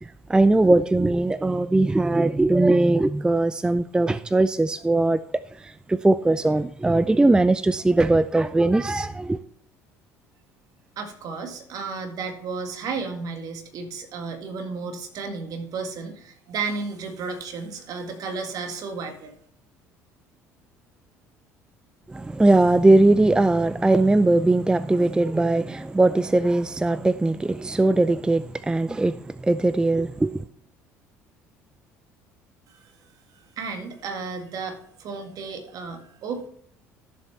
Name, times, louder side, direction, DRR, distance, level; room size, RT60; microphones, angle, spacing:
voice 1, 0.0-9.4 22.1-30.4, right 2 dB, 10° right, 0.4 m, -20 dB
voice 2, 11.0-19.3 32.7-32.9 33.6-36.5, right 4 dB, 55° right, 1.9 m, -33 dB
13.5 x 7.4 x 3.3 m
hypercardioid pair, 60°, 8 cm